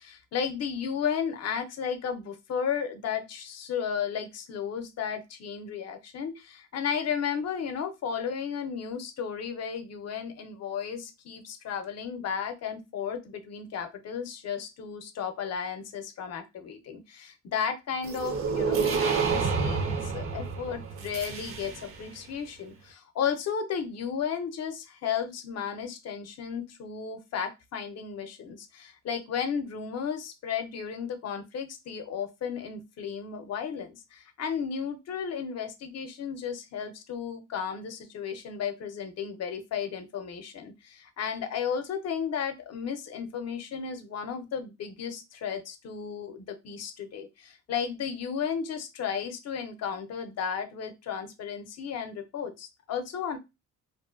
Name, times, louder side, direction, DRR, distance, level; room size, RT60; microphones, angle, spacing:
voice 1, 0.0-53.4, left 7 dB, 55° left, 8 dB, 0.6 m, -34 dB
sound 1, 18.0-22.1, right 5 dB, 45° right, 0.6 m, -29 dB
2.6 x 2.2 x 2.4 m, 0.23 s
cardioid pair, 90°, 30 cm